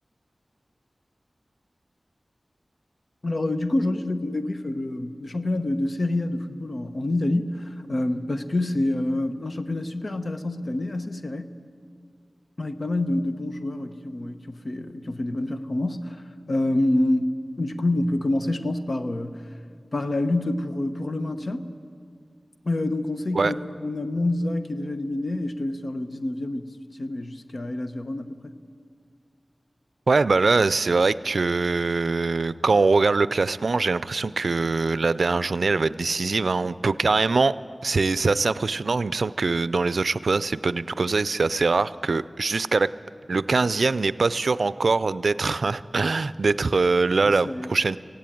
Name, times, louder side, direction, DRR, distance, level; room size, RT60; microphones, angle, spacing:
voice 1, 3.2-11.5 12.6-19.4 19.9-21.7 22.6-26.7 27.0-28.6 47.2-47.7, left 1 dB, 60° left, 9 dB, 1.0 m, -27 dB
voice 2, 30.1-37.5 37.8-42.9 43.3-48.0, right 3 dB, 85° right, 16 dB, 0.4 m, -23 dB
17.5 x 16.0 x 9.2 m, 2.2 s
wide cardioid pair, 50°, 0 cm